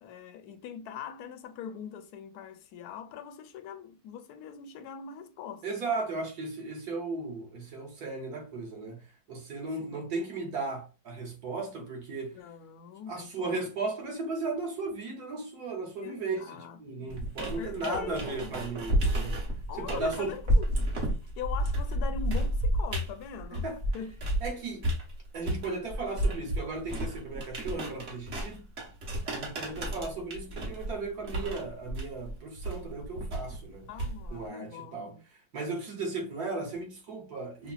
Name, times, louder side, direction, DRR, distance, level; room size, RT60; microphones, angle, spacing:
voice 1, 0.0-5.6 9.8-10.1 12.3-13.7 16.0-17.2 17.6-18.6 19.7-21.0 21.4-24.1 33.9-35.2, left 7 dB, 70° left, 1.0 m, -42 dB
voice 2, 5.6-12.4 13.1-16.4 16.8-19.4 19.8-20.3 23.5-23.8 24.4-24.9 25.3-28.7 29.3-33.9 34.3-35.1 35.5-37.7, right 3 dB, 60° right, 1.4 m, -36 dB
sound 1, 17.1-24.5 24.8-34.4, right 1 dB, 40° right, 1.2 m, -31 dB
5.6 x 2.0 x 2.3 m
omnidirectional pair, 2.0 m